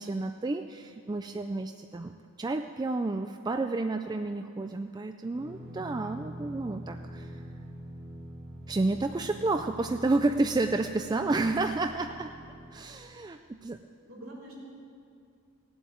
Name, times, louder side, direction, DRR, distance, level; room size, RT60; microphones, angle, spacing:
voice 1, 0.0-2.1 2.4-7.4 8.7-12.4 12.7-13.8, right 2 dB, 20° right, 6 dB, 0.3 m, -30 dB
sound 1, 5.3-12.7, right 1 dB, 45° right, 3.2 m, -44 dB
voice 2, 14.0-14.6, right 1 dB, 60° right, -5 dB, 4.1 m, -46 dB
17.5 x 7.9 x 9.1 m, 2.4 s
head